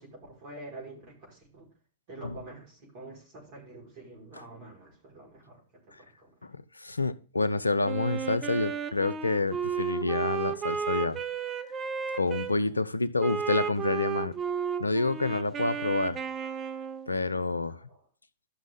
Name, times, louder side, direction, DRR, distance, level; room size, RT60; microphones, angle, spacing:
voice 1, 0.0-1.7 2.1-5.6 6.0-6.3 8.7-8.8 9.4-9.8 10.6-10.7 13.9-14.0 17.5-18.0, right 2 dB, 45° right, 5.4 m, -48 dB
voice 2, 6.4-11.2 12.1-14.3 14.8-16.2 17.1-17.8, left 3 dB, 85° left, 0.6 m, -28 dB
Wind instrument woodwind instrument, 7.8-12.5 13.2-17.1, right 7 dB, 25° right, 0.9 m, -33 dB
13.0 x 6.1 x 3.8 m
figure-of-eight pair, 100°, 0 cm